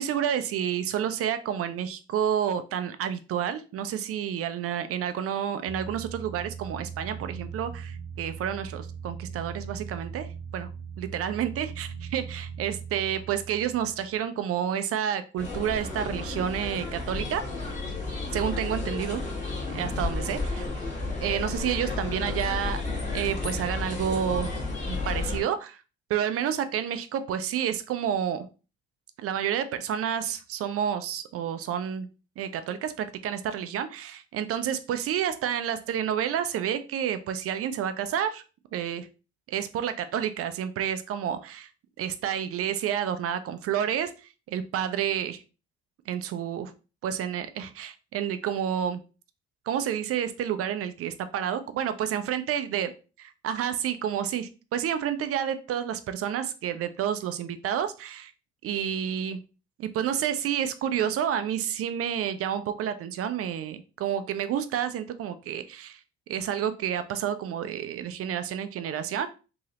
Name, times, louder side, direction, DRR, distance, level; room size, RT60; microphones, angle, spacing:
voice 1, 0.0-10.3 10.5-10.7 11.0-17.4 18.3-19.2 19.7-20.7 21.2-22.8 23.1-24.5 24.9-25.8 26.1-28.5 29.2-32.1 32.4-38.4 38.7-39.1 39.5-41.7 42.0-45.4 46.1-46.7 47.0-49.0 49.7-52.9 53.4-58.3 58.6-59.4 59.8-66.0 66.3-69.3, right 9 dB, 45° right, 11 dB, 0.5 m, -29 dB
sound 1, 5.6-14.3, right 6 dB, 80° left, 1.5 m, -40 dB
sound 2, 15.4-25.4, left 3 dB, 20° left, 1.4 m, -32 dB
3.0 x 2.7 x 2.8 m, 0.33 s
hypercardioid pair, 55°, 33 cm